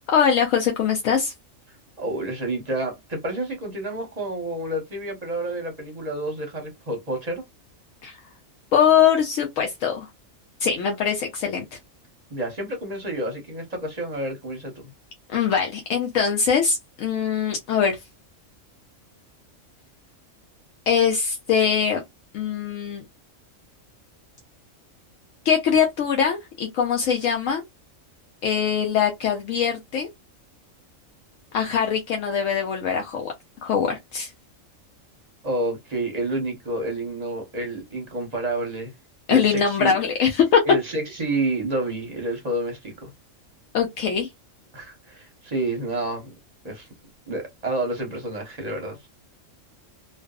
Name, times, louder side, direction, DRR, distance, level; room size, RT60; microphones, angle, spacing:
voice 1, 0.1-1.3 8.0-8.2 8.7-10.1 10.6-11.7 15.3-18.0 20.9-22.0 22.3-23.0 25.5-27.6 28.4-30.1 31.5-33.3 33.6-34.3 39.3-40.6 43.7-44.3, left 7 dB, 75° left, 1.0 m, -22 dB
voice 2, 2.0-7.4 12.3-14.9 35.4-38.9 39.3-39.9 40.6-43.1 44.7-46.3 46.6-46.9 47.3-49.0, right 2 dB, 40° right, 0.7 m, -29 dB
2.5 x 2.3 x 2.3 m
omnidirectional pair, 1.4 m